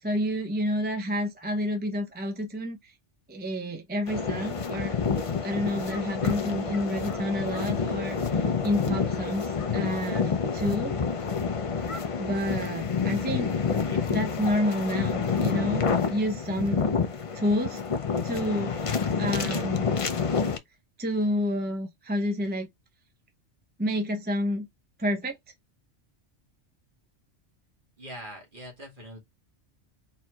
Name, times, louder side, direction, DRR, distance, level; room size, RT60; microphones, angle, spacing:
voice 1, 0.0-2.9 3.3-5.0 5.4-10.9 12.2-13.5 14.1-16.8 17.3-17.8 18.2-19.9 21.0-22.7 23.8-24.7 25.0-25.4, equal, 10° right, 0.7 m, -29 dB
sound 1, 4.1-20.6, left 5 dB, 40° left, 0.5 m, -28 dB
voice 2, 28.0-29.2, equal, 45° right, 1.7 m, -42 dB
4.6 x 4.1 x 2.3 m
omnidirectional pair, 1.3 m